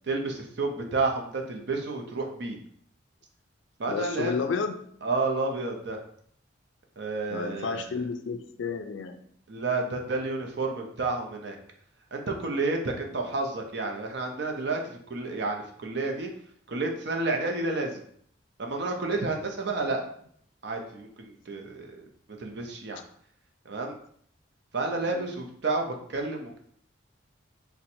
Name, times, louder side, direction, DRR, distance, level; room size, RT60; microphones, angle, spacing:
voice 1, 0.1-2.6 3.8-4.3 5.0-6.0 7.0-7.9 9.5-11.6 12.1-16.3 16.7-18.0 18.6-20.0 20.6-22.1 22.4-23.0 23.7-24.0 24.7-26.6, right 3 dB, 60° right, 2 dB, 0.5 m, -30 dB
voice 2, 3.9-4.8 7.3-9.1 13.1-13.2 25.1-25.3, left 5 dB, 65° left, 7 dB, 0.3 m, -31 dB
4.2 x 2.1 x 2.6 m, 0.64 s
head